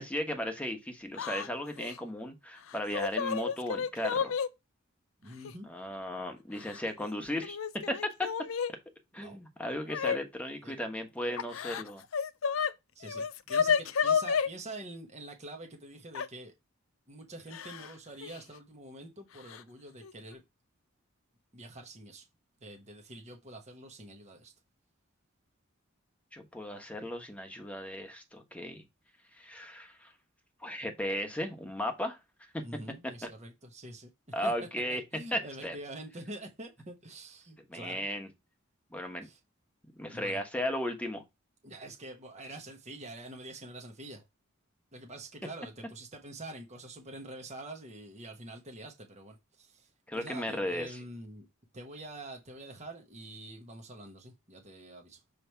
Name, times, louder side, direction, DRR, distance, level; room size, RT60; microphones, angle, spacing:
voice 1, 0.0-4.3 5.7-7.6 7.9-8.3 8.7-8.8 9.1-12.0 26.3-28.8 29.3-30.1 30.6-32.2 32.5-32.6 33.2-33.3 34.3-35.0 35.3-35.8 37.7-38.3 38.9-39.3 40.0-41.2 50.1-50.9, left 1 dB, 5° left, 1.2 m, -35 dB
Yell / Crying sobbing, 1.2-1.5 1.8-2.0 2.7-4.5 5.4-5.5 6.6-7.1 7.4-8.7 9.9-10.2 11.4-12.7 13.0-14.5 16.1-16.3 17.5-17.9 18.2-18.4 19.5-19.6 20.0-20.3, left 6 dB, 75° left, 0.5 m, -31 dB
voice 2, 5.2-5.7 9.2-9.4 10.6-10.8 12.9-16.5 17.1-20.4 21.5-22.3 22.6-24.5 32.6-34.1 34.4-34.5 34.9-38.1 39.2-39.4 40.1-40.4 41.6-44.2 44.9-51.5 51.7-55.2, right 1 dB, 35° right, 1.1 m, -46 dB
6.9 x 3.2 x 4.5 m
head